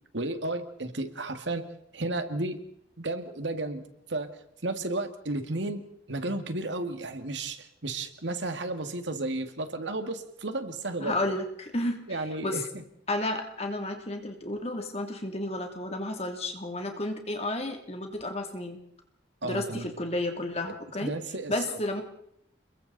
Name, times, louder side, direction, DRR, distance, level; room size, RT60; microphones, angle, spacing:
voice 1, 0.1-1.7 1.9-2.6 3.0-3.8 4.1-4.3 4.6-5.8 6.1-11.2 12.1-12.6 19.4-19.9 21.0-21.8, right 2 dB, 85° right, 8 dB, 2.0 m, -33 dB
voice 2, 11.0-12.6 13.1-18.8 19.4-21.1 21.5-22.0, left 1 dB, 35° left, 4 dB, 2.7 m, -32 dB
29.5 x 22.0 x 4.1 m, 0.74 s
head